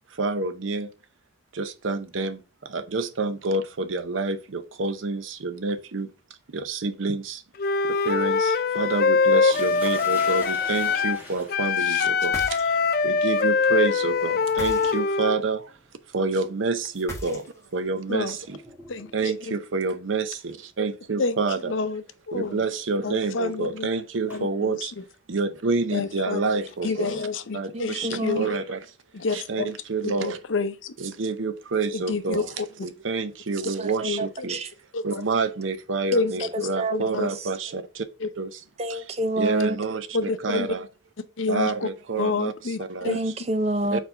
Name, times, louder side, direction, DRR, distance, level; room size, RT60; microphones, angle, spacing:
voice 1, 0.1-0.9 1.5-6.1 6.5-7.4 7.8-15.7 16.1-18.6 19.1-21.7 22.3-24.9 25.3-27.2 27.5-28.8 29.3-30.4 31.0-32.5 32.8-34.6 35.0-38.1 38.4-38.6 38.9-39.0 39.4-40.9 41.5-42.5 42.8-43.2 43.9-44.0, right 4 dB, 90° right, 0.7 m, -28 dB
Wind instrument woodwind instrument, 7.6-11.2 11.5-15.4, left 5 dB, 50° left, 0.4 m, -23 dB
Sink (filling or washing), 9.5-19.5 20.6-20.9 21.4-21.5 23.0-24.5, equal, 10° right, 1.8 m, -46 dB
sound 1, 12.2-13.0 14.4-15.3 16.9-17.8, left 1 dB, 15° left, 1.3 m, -38 dB
voice 2, 21.7-22.6 23.0-23.9 24.3-24.7 25.9-26.4 26.8-28.5 29.1-29.7 30.0-30.9 31.9-32.7 34.0-34.5 34.9-35.2 36.1-37.3 38.2-38.3 40.1-40.7 41.4-41.9 42.2-43.2, left 4 dB, 90° left, 0.7 m, -29 dB
voice 3, 27.7-28.5 33.8-34.7 36.4-36.5 36.8-37.5 38.8-39.8 43.1-44.0, right 1 dB, 35° right, 0.5 m, -28 dB
4.4 x 4.1 x 5.5 m
head